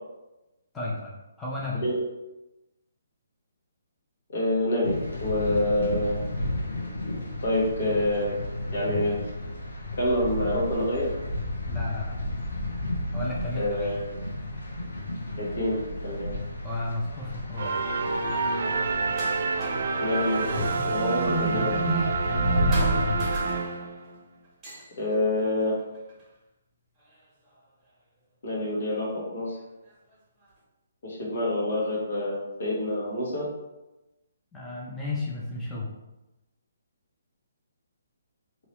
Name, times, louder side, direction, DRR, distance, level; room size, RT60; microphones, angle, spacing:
voice 1, 0.7-1.8 11.7-12.2 13.1-13.9 16.6-17.8 20.5-23.2 34.5-35.9, left 1 dB, 10° left, -5 dB, 0.6 m, -33 dB
voice 2, 4.3-6.2 7.4-8.3 8.7-9.2 10.0-11.1 13.5-14.0 15.4-16.3 20.0-20.5 20.8-21.8 25.0-25.7 28.4-29.6 31.0-33.5, left 1 dB, 60° left, -4 dB, 1.4 m, -27 dB
sound 1, 4.8-23.4, left 1 dB, 80° left, 1.0 m, -32 dB
sound 2, 17.6-24.2, right 4 dB, 65° right, 0.4 m, -28 dB
sound 3, 19.0-20.0 20.2-22.4 22.7-24.1 24.4-26.3 27.0-27.9 28.8-28.9 29.5-30.6, right 1 dB, 15° right, 1.1 m, -41 dB
2.9 x 2.8 x 3.1 m, 0.99 s
hypercardioid pair, 145°, 0 cm